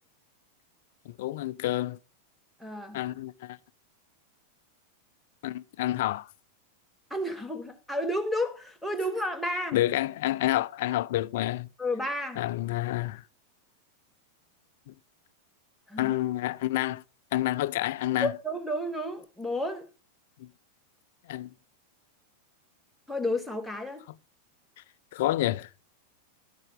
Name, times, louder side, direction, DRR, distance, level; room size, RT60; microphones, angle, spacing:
voice 1, 1.1-2.0 2.9-3.6 5.4-6.3 9.7-11.7 12.4-13.2 14.9-15.0 16.0-17.0 17.3-18.3 20.4-20.5 21.3-21.5 25.1-25.7, left 15 dB, 55° left, 0.4 m, -28 dB
voice 2, 2.6-3.0 7.1-9.8 11.8-12.4 15.9-16.2 18.2-19.9 23.1-24.0, left 1 dB, ahead, 1.5 m, -31 dB
13.0 x 6.5 x 3.7 m
figure-of-eight pair, 90°, 0 cm